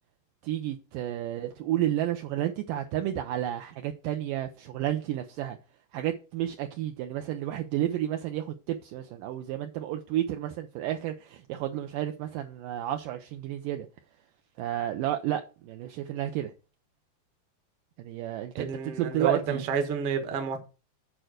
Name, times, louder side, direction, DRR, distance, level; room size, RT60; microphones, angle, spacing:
voice 1, 0.4-5.6 5.9-13.9 14.6-16.5 18.0-19.6, right 12 dB, 90° right, 1.9 m, -31 dB
voice 2, 18.5-20.7, right 6 dB, 65° right, 1.4 m, -30 dB
8.9 x 4.5 x 6.4 m
omnidirectional pair, 4.7 m